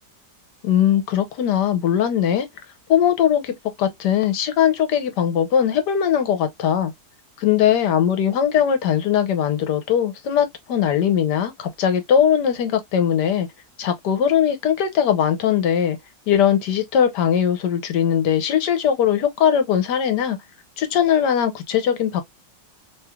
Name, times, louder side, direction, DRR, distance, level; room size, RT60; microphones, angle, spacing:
voice 1, 0.6-2.5 2.9-6.9 7.4-13.5 13.8-16.0 16.3-20.4 20.8-22.2, left 9 dB, 75° left, 1.3 m, -20 dB
3.2 x 3.1 x 2.2 m
omnidirectional pair, 1.9 m